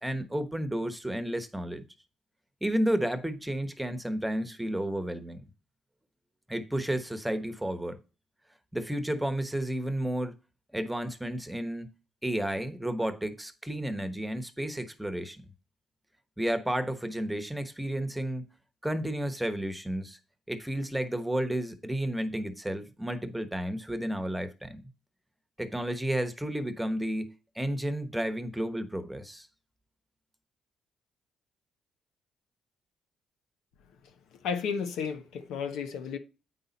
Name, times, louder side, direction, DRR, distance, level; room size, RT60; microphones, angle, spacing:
voice 1, 0.0-1.8 2.6-5.5 6.5-8.0 8.7-10.3 10.7-11.9 12.2-15.4 16.4-18.4 18.8-20.2 20.5-24.8 25.6-29.5, right 1 dB, 5° right, 1.1 m, -32 dB
voice 2, 34.4-36.2, left 6 dB, 85° left, 1.1 m, -32 dB
8.7 x 5.6 x 4.1 m
cardioid pair, 90°, 0 cm